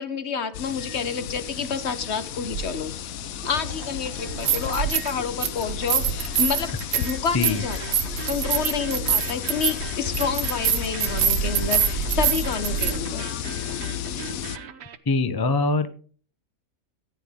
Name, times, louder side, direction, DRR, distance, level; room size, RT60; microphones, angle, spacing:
voice 1, 0.0-2.9 3.4-13.3, left 6 dB, 55° left, 11 dB, 1.2 m, -29 dB
sound 1, 0.5-14.6, left 10 dB, 80° left, 1.1 m, -33 dB
sound 2, 0.9-3.1 3.3-15.0, right 7 dB, 55° right, 1.0 m, -41 dB
sound 3, 2.5-2.6 4.2-5.1 5.4-12.9, right 8 dB, 80° right, 1.3 m, -25 dB
voice 2, 15.1-15.9, left 3 dB, 25° left, 10 dB, 0.5 m, -22 dB
15.0 x 9.2 x 3.6 m, 0.42 s
omnidirectional pair, 1.5 m